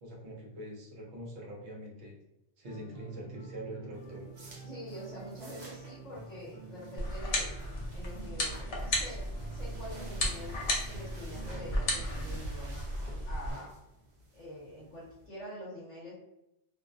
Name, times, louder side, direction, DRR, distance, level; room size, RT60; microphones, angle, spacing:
voice 1, 0.0-2.2 2.6-4.3, equal, 75° right, -2 dB, 1.0 m, -44 dB
sound 1, 2.6-12.4, right 3 dB, 5° left, 0.8 m, -48 dB
sound 2, 3.9-15.3, right 1 dB, 50° right, 0.6 m, -53 dB
voice 2, 4.6-7.5 7.9-10.6 10.9-12.9 13.3-13.7 14.3-16.2, equal, 40° left, -7 dB, 0.8 m, -45 dB
sound 3, 7.0-13.5, left 1 dB, 70° left, 0.9 m, -34 dB
2.5 x 2.0 x 2.4 m, 0.89 s
omnidirectional pair, 1.1 m